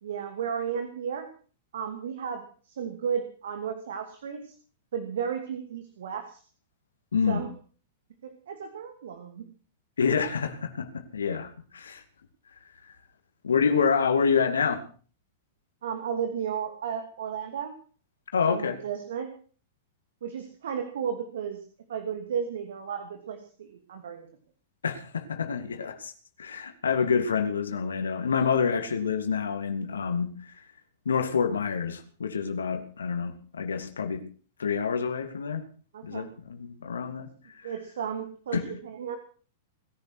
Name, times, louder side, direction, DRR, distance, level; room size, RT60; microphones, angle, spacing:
voice 1, 0.0-1.3 1.7-4.5 4.9-6.4 7.3-7.5 8.2-9.5 15.8-17.8 18.5-19.3 20.2-21.6 21.9-24.3 35.9-36.3 37.6-39.2, right 7 dB, 75° right, 6 dB, 2.7 m, -34 dB
voice 2, 7.1-7.4 10.0-12.0 13.4-14.8 18.3-18.8 24.8-26.1 26.4-30.5 31.1-34.2 34.6-35.7 36.0-37.3 37.6-37.7 38.5-38.7, left 6 dB, 90° left, 7 dB, 2.5 m, -27 dB
20.5 x 11.0 x 6.2 m, 0.42 s
hypercardioid pair, 110°, 0 cm